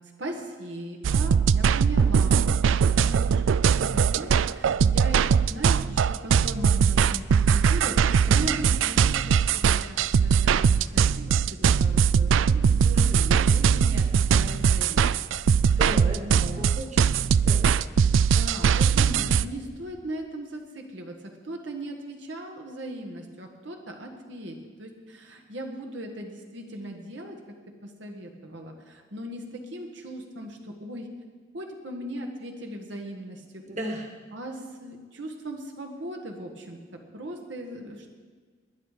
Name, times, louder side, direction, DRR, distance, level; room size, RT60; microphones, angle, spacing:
voice 1, 0.2-2.6 3.0-15.1 15.7-15.8 16.1-16.8 18.1-21.2 21.4-27.4 27.8-31.1 31.5-33.6 34.3-38.1, right 1 dB, 70° right, 2 dB, 1.5 m, -38 dB
sound 1, 1.0-19.5, right 6 dB, 85° right, 0.4 m, -21 dB
voice 2, 8.2-8.7 12.9-13.4 15.7-17.8 33.7-34.1, equal, 35° right, 2 dB, 1.7 m, -36 dB
20.5 x 10.5 x 5.0 m, 1.5 s
head